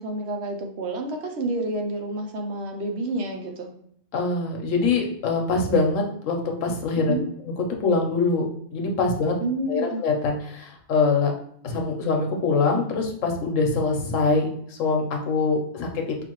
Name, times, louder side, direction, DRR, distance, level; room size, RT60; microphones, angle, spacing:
voice 1, 0.0-3.7 7.0-7.3 9.4-10.0, right 2 dB, 65° right, 3 dB, 0.9 m, -29 dB
voice 2, 4.1-7.2 7.8-8.5 8.7-9.4 9.7-11.3 11.6-16.2, left 4 dB, 80° left, 2 dB, 1.1 m, -24 dB
5.0 x 2.5 x 3.0 m, 0.65 s
omnidirectional pair, 1.3 m